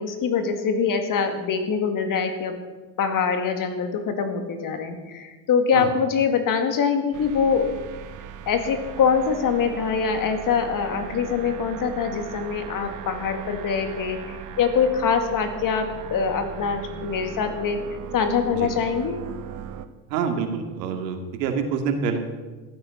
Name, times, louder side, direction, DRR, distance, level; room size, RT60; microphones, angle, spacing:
voice 1, 0.0-2.6 3.0-7.7 8.5-17.8 18.1-19.3, left 6 dB, 40° left, 7 dB, 2.1 m, -24 dB
sound 1, 7.1-19.9, right 9 dB, 40° right, 1.1 m, -38 dB
voice 2, 20.1-22.2, right 6 dB, 80° right, 5 dB, 2.4 m, -26 dB
14.5 x 11.5 x 5.8 m, 1.3 s
supercardioid pair, 110°, 48 cm